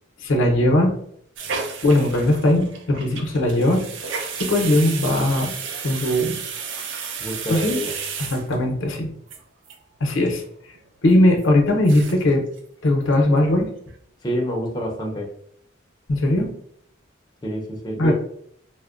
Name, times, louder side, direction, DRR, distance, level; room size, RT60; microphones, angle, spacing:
voice 1, 0.2-1.0 1.8-3.8 4.4-5.5 5.8-6.4 7.5-7.8 8.2-9.1 10.0-10.4 11.0-12.4 12.8-13.7 16.1-16.5 18.0-18.1, left 1 dB, 75° left, 2 dB, 0.6 m, -19 dB
sound 1, 1.4-8.9 9.3-9.4 9.7-9.8 10.0-10.4 10.8-10.9 11.4-11.5 11.8-12.3 12.6-12.7 13.0-13.5 13.9-14.0, right 5 dB, 70° right, 0.4 m, -33 dB
voice 2, 7.2-7.9 14.2-15.3 17.4-18.1, equal, 20° left, -1 dB, 0.5 m, -27 dB
4.3 x 2.0 x 2.4 m, 0.67 s
head